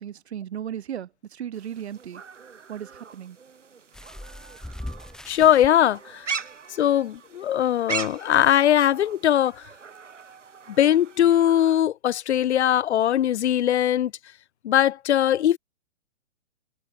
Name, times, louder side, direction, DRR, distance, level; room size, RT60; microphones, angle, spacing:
voice 1, 0.0-2.2 2.7-3.4, right 10 dB, 65° right, 3.4 m, -36 dB
sound 1, 1.5-11.8, right 6 dB, 90° right, 3.4 m, -39 dB
sound 2, 3.9-5.7 6.6-6.7 7.2-7.3, left 1 dB, ahead, 3.3 m, -39 dB
voice 2, 5.3-6.2 6.8-9.6 10.8-14.1 14.6-15.6, left 11 dB, 70° left, 0.7 m, -20 dB
hypercardioid pair, 140°, 36 cm